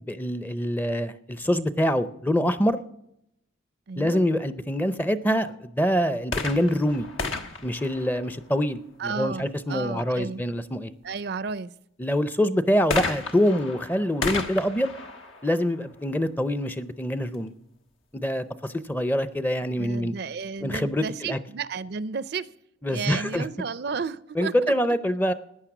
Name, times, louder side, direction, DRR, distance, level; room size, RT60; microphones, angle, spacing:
voice 1, 0.1-2.8 4.0-7.1 7.6-10.9 12.0-14.9 15.4-17.5 18.1-20.1 20.6-21.4 22.8-23.4 24.4-25.3, equal, 10° left, 13 dB, 0.5 m, -25 dB
voice 2, 3.9-4.2 9.0-10.4 11.0-11.7 19.8-22.5 22.9-24.5, right 5 dB, 50° right, 17 dB, 0.4 m, -32 dB
sound 1, 6.2-8.8 12.9-16.5 17.3-17.4, left 3 dB, 85° left, 1.4 m, -33 dB
15.0 x 9.7 x 6.0 m, 0.79 s
head